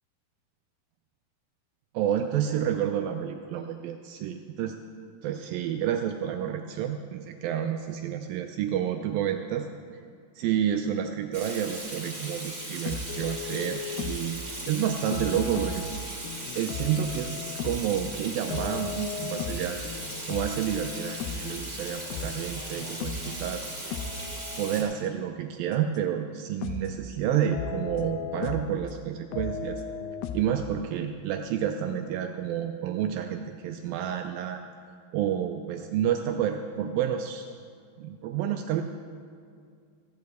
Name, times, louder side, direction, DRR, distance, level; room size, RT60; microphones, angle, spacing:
voice 1, 1.9-4.8 5.2-9.7 10.4-14.4 14.7-15.9 16.6-19.8 20.3-24.0 24.6-29.8 30.3-34.6 35.1-37.5 38.0-38.8, right 9 dB, 85° right, 6 dB, 2.0 m, -29 dB
Water tap faucet / Sink (filling or washing), 11.3-24.8, right 1 dB, 20° right, 2.1 m, -38 dB
sound 1, 12.9-14.3 14.7-23.5 23.9-25.0 26.0-26.1 26.6-27.0 27.3-29.0 29.3-30.6, left 5 dB, 85° left, 2.6 m, -36 dB
14.5 x 5.3 x 7.9 m, 2.2 s
omnidirectional pair, 4.6 m